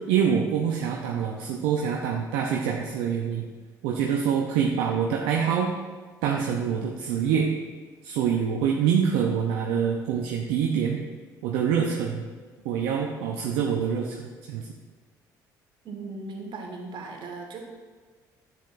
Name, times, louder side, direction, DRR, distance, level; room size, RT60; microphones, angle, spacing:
voice 1, 0.1-3.4 3.8-5.7 6.2-7.5 8.0-11.0 11.4-12.3 12.6-14.7, right 7 dB, 70° right, 0 dB, 0.7 m, -25 dB
voice 2, 15.8-17.6, right 3 dB, 50° right, 1 dB, 1.7 m, -37 dB
10.0 x 7.7 x 2.6 m, 1.5 s
hypercardioid pair, 55°, 10 cm